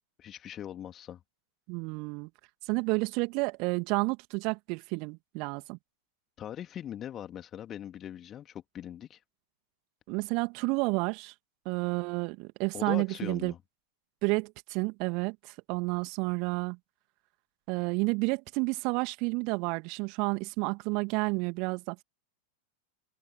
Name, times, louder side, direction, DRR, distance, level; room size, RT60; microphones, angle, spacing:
voice 1, 0.2-1.2 6.4-9.2 12.7-13.6, left 10 dB, 30° left, 2.9 m, -40 dB
voice 2, 1.7-2.3 2.7-5.8 10.1-11.3 11.7-13.5 14.2-16.8 17.7-22.0, right 30 dB, 45° right, 2.4 m, -30 dB
figure-of-eight pair, 90°, 0 cm